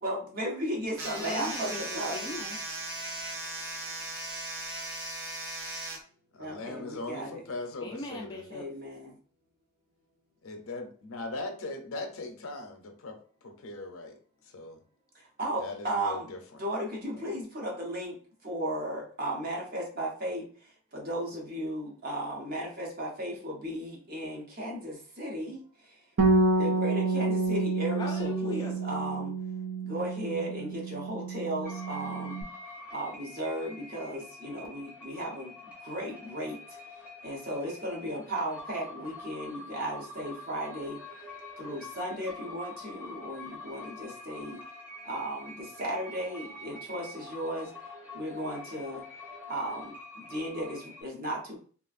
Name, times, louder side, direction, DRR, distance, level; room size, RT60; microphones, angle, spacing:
voice 1, 0.0-2.2 6.4-7.4 8.5-9.2 15.1-16.3 16.6-26.0 26.6-29.3 29.8-32.4 32.9-36.8 37.2-41.0 41.6-44.6 45.0-49.0 49.5-51.6, right 1 dB, 45° right, -1 dB, 0.8 m, -35 dB
sound 1, 0.9-6.0, right 2 dB, 75° right, 1.0 m, -37 dB
voice 2, 1.2-3.9 7.8-8.7 28.0-28.7, left 3 dB, 20° left, 0 dB, 0.3 m, -40 dB
voice 3, 6.3-8.4 10.4-13.2 13.4-14.1 14.4-14.8 15.6-16.6 17.1-17.3, left 2 dB, 80° left, 5 dB, 0.6 m, -39 dB
Bass guitar, 26.2-32.4, right 3 dB, 60° right, 0.4 m, -29 dB
sound 2, 31.6-51.0, left 2 dB, 5° right, 0.7 m, -46 dB
3.0 x 2.4 x 2.4 m, 0.43 s
head